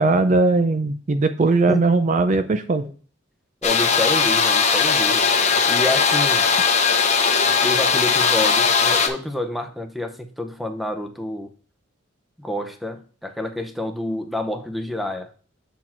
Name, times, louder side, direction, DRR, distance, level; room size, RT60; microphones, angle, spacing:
voice 1, 0.0-2.8, right 3 dB, 35° right, 8 dB, 0.4 m, -19 dB
sound 1, 3.6-9.1, left 5 dB, 35° left, 0.8 m, -18 dB
voice 2, 3.6-5.3 5.5-6.5 7.6-11.5 12.4-15.3, left 1 dB, ahead, 6 dB, 0.8 m, -28 dB
7.2 x 4.4 x 4.4 m, 0.40 s
head